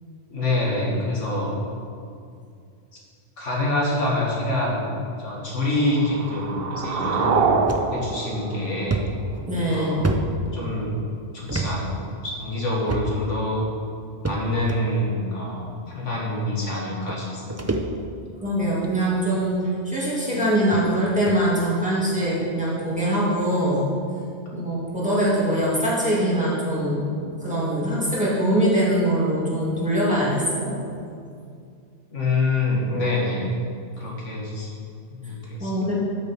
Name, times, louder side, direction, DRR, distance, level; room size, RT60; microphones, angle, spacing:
voice 1, 0.3-1.6 3.4-4.9 5.2-7.5 7.9-9.0 9.7-11.0 11.3-11.9 12.2-13.7 14.2-17.6 32.1-33.5 34.0-34.7 35.1-35.7, left 2 dB, 85° left, -4 dB, 2.3 m, -26 dB
sound 1, 5.7-9.7, right 5 dB, 60° right, 0.8 m, -26 dB
sound 2, 7.7-7.9 8.3-8.4 8.9-10.9 11.5-11.7 12.0-12.1 12.9-13.3 14.2-14.8 15.7-15.8 16.7-16.8 17.1-18.3 18.7-19.0 19.8-19.9 20.3-20.4 20.7-20.8 21.3-21.5, right 2 dB, 25° right, 0.4 m, -28 dB
voice 2, 9.5-10.1 18.4-19.6 19.8-23.9 24.5-27.0 27.4-30.8 35.6-35.9, right 1 dB, 5° right, -8 dB, 2.5 m, -23 dB
12.5 x 6.9 x 4.5 m, 2.4 s
omnidirectional pair, 1.2 m